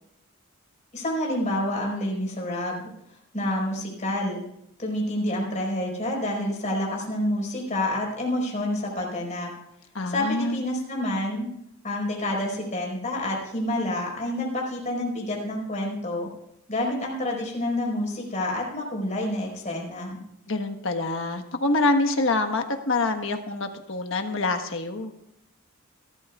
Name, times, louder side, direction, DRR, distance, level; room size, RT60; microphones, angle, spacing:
voice 1, 0.9-2.8 3.3-4.4 4.8-9.5 10.1-11.5 11.8-16.3 16.7-20.2, left 1 dB, 35° left, -1 dB, 4.7 m, -28 dB
voice 2, 9.9-10.6 20.5-25.1, left 2 dB, 60° left, 6 dB, 1.4 m, -26 dB
28.0 x 12.5 x 2.4 m, 0.77 s
head